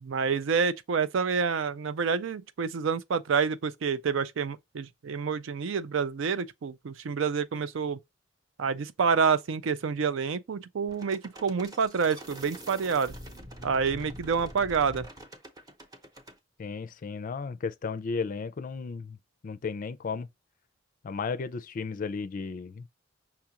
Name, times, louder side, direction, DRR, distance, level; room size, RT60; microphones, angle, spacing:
voice 1, 0.0-8.0 8.6-13.1 13.6-15.1, right 5 dB, 75° right, 0.4 m, -28 dB
sound 1, 10.9-16.4, equal, 20° right, 0.7 m, -45 dB
voice 2, 16.6-19.2 19.4-20.3 21.0-22.9, left 5 dB, 45° left, 0.4 m, -34 dB
5.8 x 2.4 x 2.9 m
head